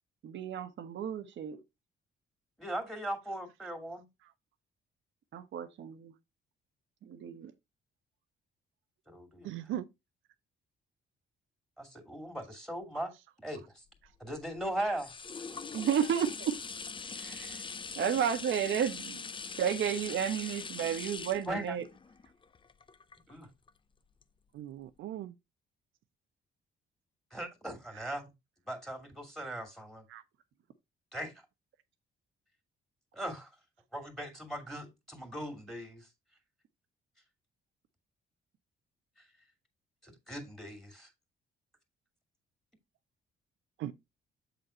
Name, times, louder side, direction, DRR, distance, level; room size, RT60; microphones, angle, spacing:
voice 1, 0.2-1.6 5.3-6.1 7.0-7.5 15.7-16.5 17.2-17.6 18.0-19.2 19.6-21.9, right 8 dB, 70° right, 1.2 m, -32 dB
voice 2, 2.6-4.1 9.1-9.5 11.8-13.1 13.4-13.8 14.2-15.1 21.5-21.7 23.3-23.5 27.3-28.3 28.7-30.0 31.1-31.3 33.1-33.5 33.9-36.1 40.0-41.1, right 1 dB, ahead, 2.4 m, -39 dB
voice 3, 9.4-9.9 15.5-15.6 24.5-25.3 30.1-30.2 43.8-43.9, right 12 dB, 85° right, 0.7 m, -39 dB
sound 1, 13.9-23.7 24.2-24.3, left 5 dB, 25° left, 0.5 m, -42 dB
7.7 x 4.0 x 4.4 m
cardioid pair, 90°, 20 cm